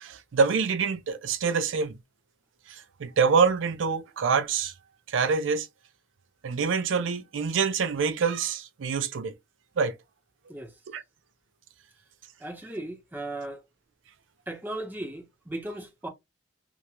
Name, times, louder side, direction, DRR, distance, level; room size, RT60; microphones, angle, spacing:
voice 1, 0.0-2.0 2.7-4.7 5.1-5.7 6.4-9.3 9.8-9.9 10.9-11.0, right 5 dB, 85° right, 0.4 m, -26 dB
voice 2, 12.4-13.6 14.5-16.1, right 1 dB, 10° right, 0.5 m, -36 dB
2.4 x 2.1 x 2.9 m
head